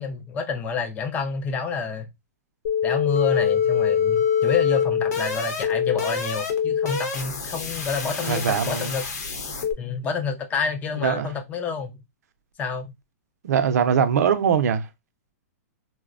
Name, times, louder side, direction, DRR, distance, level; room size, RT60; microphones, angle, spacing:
voice 1, 0.0-2.1 2.8-9.1 9.8-12.0 12.6-12.9, left 5 dB, 15° left, 0.4 m, -28 dB
sound 1, 2.6-9.7, left 7 dB, 85° left, 0.9 m, -24 dB
voice 2, 8.2-8.9 11.0-11.3 13.4-14.9, right 7 dB, 75° right, 0.5 m, -21 dB
3.9 x 2.1 x 2.4 m
hypercardioid pair, 150°, 9 cm